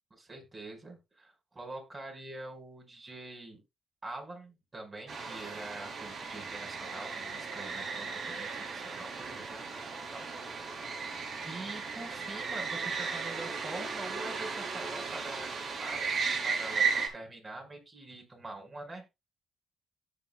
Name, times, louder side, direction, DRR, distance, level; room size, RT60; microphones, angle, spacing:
voice 1, 0.1-3.6 4.0-10.7 11.4-15.5 15.8-19.0, right 2 dB, 30° right, 2 dB, 5.4 m, -45 dB
sound 1, 5.1-17.1, right 5 dB, 55° right, 4.2 m, -35 dB
17.5 x 6.3 x 2.4 m, 0.23 s
cardioid pair, 90°, 0 cm